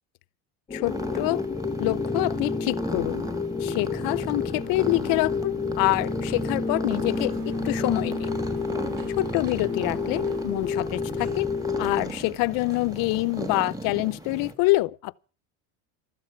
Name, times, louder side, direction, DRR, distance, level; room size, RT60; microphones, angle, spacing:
voice 1, 0.7-1.4 1.8-3.2 3.6-8.3 9.2-11.5 11.8-15.2, left 22 dB, 55° left, 0.8 m, -26 dB
sound 1, 0.7-12.0, left 5 dB, 15° left, 1.0 m, -30 dB
sound 2, 0.8-14.5, right 1 dB, 10° right, 2.7 m, -35 dB
Sliding door, 6.2-14.0, right 6 dB, 55° right, 3.5 m, -48 dB
15.0 x 13.5 x 5.9 m
supercardioid pair, 135°, 40 cm